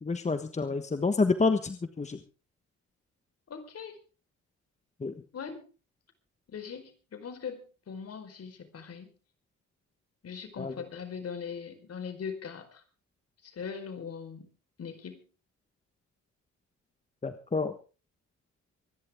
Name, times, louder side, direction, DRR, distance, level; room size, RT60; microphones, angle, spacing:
voice 1, 0.0-2.2 5.0-5.1 10.6-10.7 17.2-17.7, left 4 dB, 25° left, 8 dB, 1.3 m, -28 dB
voice 2, 3.5-4.0 5.3-5.7 6.5-9.1 10.2-12.8 13.4-14.5 14.8-15.2, left 6 dB, 55° left, 8 dB, 4.7 m, -40 dB
25.0 x 11.0 x 3.7 m, 0.35 s
cardioid pair, 90°, 30 cm